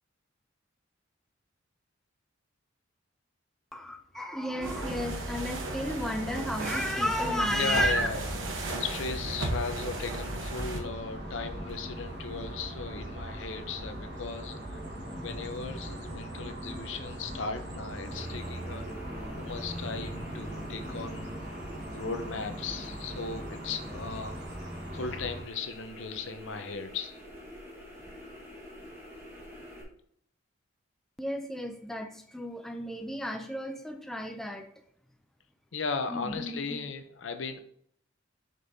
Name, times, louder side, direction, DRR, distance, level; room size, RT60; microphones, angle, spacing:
voice 1, 3.7-8.1 31.2-34.7 36.1-36.6, equal, ahead, 5 dB, 0.4 m, -32 dB
sound 1, 4.6-10.8, right 2 dB, 75° right, 1.0 m, -34 dB
voice 2, 7.5-8.3 8.8-14.8 15.2-19.0 19.3-21.4 21.9-24.4 24.9-27.1 35.7-37.6, left 4 dB, 70° left, 8 dB, 0.6 m, -37 dB
sound 2, 10.7-25.4, right 1 dB, 60° right, 1.4 m, -40 dB
sound 3, 18.1-29.8, left 1 dB, 15° right, 1.5 m, -47 dB
6.7 x 5.3 x 2.7 m, 0.66 s
head